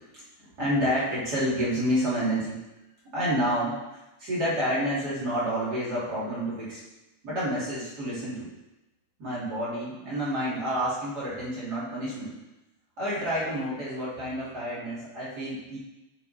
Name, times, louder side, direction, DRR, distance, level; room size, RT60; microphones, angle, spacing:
voice 1, 0.1-2.6 3.1-3.7 4.2-6.8 7.2-8.5 9.2-12.3 13.0-15.8, equal, 30° right, -9 dB, 3.2 m, -29 dB
9.0 x 4.7 x 4.4 m, 0.98 s
omnidirectional pair, 4.1 m